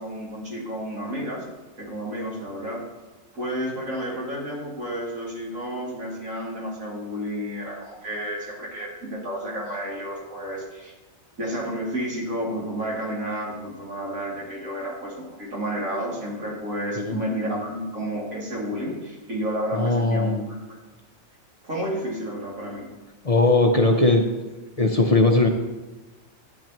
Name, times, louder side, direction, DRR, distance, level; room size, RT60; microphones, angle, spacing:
voice 1, 0.0-1.4 1.8-2.8 3.3-10.9 11.4-20.6 21.6-22.9, equal, 75° right, -5 dB, 3.0 m, -31 dB
voice 2, 19.7-20.4 23.2-24.3 24.8-25.5, left 2 dB, 40° left, 2 dB, 0.6 m, -19 dB
12.0 x 9.5 x 3.0 m, 1.2 s
omnidirectional pair, 1.4 m